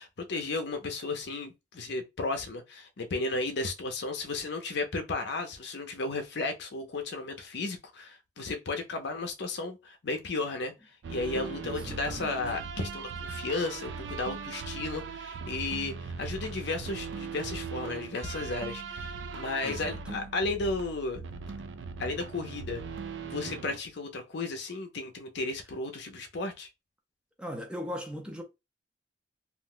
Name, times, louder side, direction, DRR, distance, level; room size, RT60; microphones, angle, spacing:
voice 1, 0.0-10.7 11.1-21.2 22.0-22.8 23.2-26.7, left 3 dB, 65° left, 0.6 m, -34 dB
sound 1, 11.0-23.8, right 5 dB, 70° right, 0.3 m, -39 dB
voice 2, 11.6-12.4 19.6-20.2 27.4-28.4, equal, 5° right, 0.5 m, -39 dB
2.5 x 2.1 x 3.7 m
head